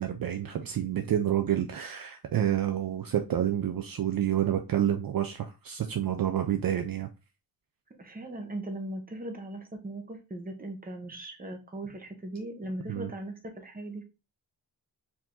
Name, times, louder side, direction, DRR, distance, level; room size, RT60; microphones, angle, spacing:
voice 1, 0.0-7.1 12.9-13.1, right 10 dB, 55° right, 0.5 m, -29 dB
voice 2, 8.0-14.0, right 1 dB, 20° right, 0.9 m, -39 dB
4.7 x 2.8 x 3.7 m
wide cardioid pair, 150°, 41 cm